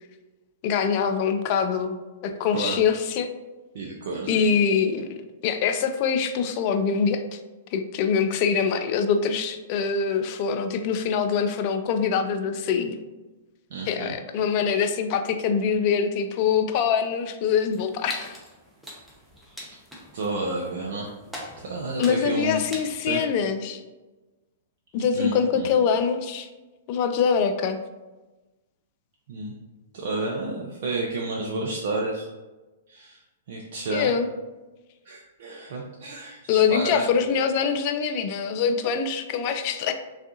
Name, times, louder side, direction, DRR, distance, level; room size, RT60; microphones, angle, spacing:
voice 1, 0.6-2.0 2.2-3.3 4.3-5.1 5.4-7.4 7.7-13.0 13.9-18.4 22.0-23.8 24.9-26.5 26.9-27.8 33.9-34.3 36.5-39.9, left 6 dB, 45° left, 7 dB, 0.3 m, -24 dB
voice 2, 3.7-4.5 13.7-14.1 20.1-21.1 21.6-22.6 23.0-23.2 25.0-25.7 29.3-29.5 29.9-32.3 32.9-33.2 33.5-34.1 35.1-37.1, right 2 dB, 55° right, -2 dB, 0.4 m, -30 dB
sound 1, 17.7-23.0, equal, ahead, 0.6 m, -43 dB
3.4 x 2.4 x 2.8 m, 1.1 s
figure-of-eight pair, 110°, 0 cm